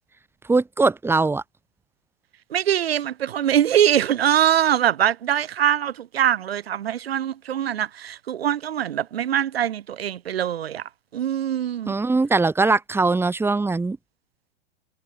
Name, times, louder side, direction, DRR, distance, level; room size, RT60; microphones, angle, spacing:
voice 1, 0.5-1.4 11.9-14.0, right 3 dB, 10° right, 2.7 m, -21 dB
voice 2, 2.5-11.9, right 10 dB, 80° right, 2.5 m, -23 dB
hypercardioid pair, 125°, 30 cm